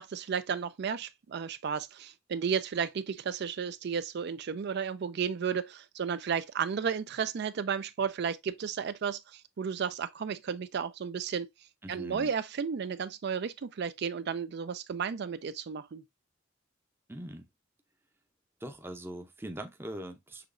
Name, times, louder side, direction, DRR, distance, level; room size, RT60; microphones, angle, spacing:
voice 1, 0.0-11.5 11.9-16.0, right 6 dB, 55° right, 0.4 m, -33 dB
voice 2, 11.8-12.3 17.1-17.5 18.6-20.5, right 1 dB, 10° right, 0.6 m, -41 dB
6.7 x 3.0 x 2.5 m
head